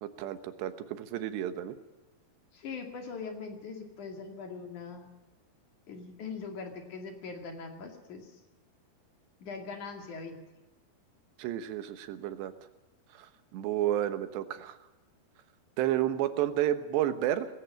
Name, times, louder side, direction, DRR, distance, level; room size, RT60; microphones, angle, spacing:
voice 1, 0.0-1.8 11.4-12.5 13.1-14.8 15.8-17.5, right 12 dB, 90° right, 10 dB, 3.4 m, -31 dB
voice 2, 2.5-5.1 5.9-8.4 9.4-10.4, left 4 dB, 50° left, 4 dB, 3.5 m, -41 dB
19.5 x 16.5 x 8.8 m, 1.1 s
omnidirectional pair, 4.8 m